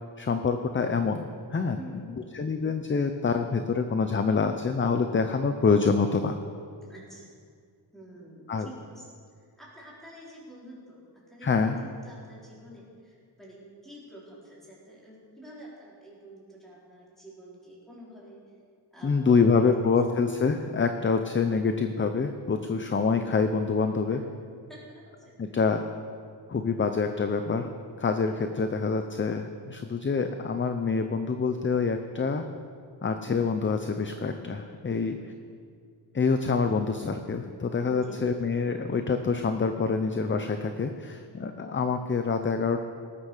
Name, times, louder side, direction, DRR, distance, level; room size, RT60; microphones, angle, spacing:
voice 1, 0.2-1.8 2.3-6.4 8.5-8.7 11.4-11.8 19.0-24.2 25.4-25.8 26.5-27.7 28.0-32.4 33.0-35.1 36.1-42.8, left 4 dB, 25° left, 7 dB, 0.6 m, -26 dB
voice 2, 1.8-2.3 6.8-7.4 7.9-9.1 9.6-18.4 18.9-19.7 24.1-24.2 24.7-25.5 34.9-35.2 37.9-38.2, equal, ahead, -7 dB, 4.7 m, -48 dB
18.5 x 9.9 x 6.6 m, 2.2 s
wide cardioid pair, 155°, 43 cm